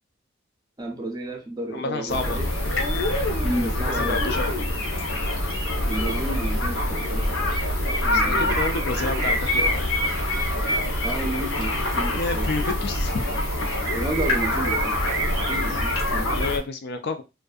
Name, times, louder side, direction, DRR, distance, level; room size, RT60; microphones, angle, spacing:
voice 1, 0.8-2.5 3.4-4.2 5.9-7.6 8.0-8.5 11.0-12.5 13.9-15.0 15.5-16.3, right 1 dB, 20° right, 3 dB, 0.5 m, -32 dB
voice 2, 1.7-2.4 3.6-4.5 7.8-9.9 12.2-13.3 16.3-17.2, left 3 dB, 55° left, 7 dB, 0.3 m, -30 dB
sound 1, 2.1-16.6, left 1 dB, 85° left, 0.9 m, -25 dB
sound 2, 5.6-16.0, right 4 dB, 65° right, 0.6 m, -35 dB
2.5 x 2.4 x 2.3 m, 0.26 s
head